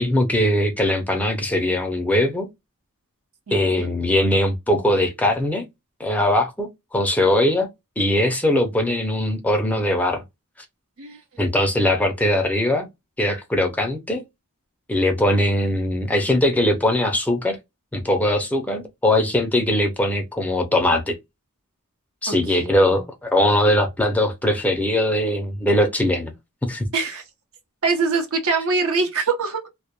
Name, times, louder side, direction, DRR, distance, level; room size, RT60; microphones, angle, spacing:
voice 1, 0.0-2.5 3.5-5.6 6.0-7.7 8.0-10.2 11.4-12.9 13.2-14.2 14.9-17.6 17.9-21.2 22.2-26.3 26.7-26.9, left 1 dB, 5° left, 0.4 m, -21 dB
voice 2, 3.5-3.9 11.0-11.2 22.3-22.8 26.9-27.2 27.8-29.7, right 4 dB, 65° right, 0.8 m, -24 dB
2.1 x 2.1 x 2.8 m
head